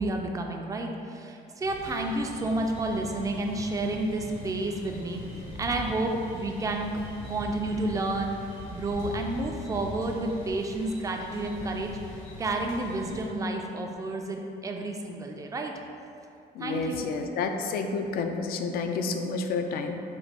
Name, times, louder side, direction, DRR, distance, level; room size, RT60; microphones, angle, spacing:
voice 1, 0.0-5.2 5.6-7.0 7.3-8.4 8.7-11.9 12.4-15.7 16.6-17.1, right 2 dB, 20° right, 2 dB, 0.4 m, -30 dB
sound 1, 1.6-13.3, left 1 dB, 80° left, 1.1 m, -42 dB
voice 2, 16.5-20.0, left 4 dB, 60° left, 6 dB, 0.4 m, -30 dB
4.4 x 2.2 x 4.0 m, 2.6 s
cardioid pair, 110°, 17 cm